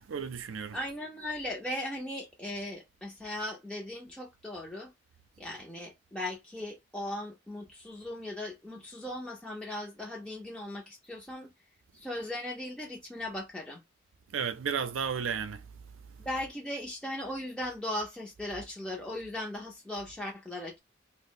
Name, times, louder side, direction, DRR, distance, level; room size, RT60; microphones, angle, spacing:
voice 1, 0.0-0.8 14.3-15.6, right 7 dB, 90° right, 0.5 m, -33 dB
voice 2, 0.7-4.9 5.4-11.5 11.9-13.8 16.2-20.8, left 1 dB, 5° left, 0.4 m, -38 dB
2.6 x 2.0 x 3.7 m
head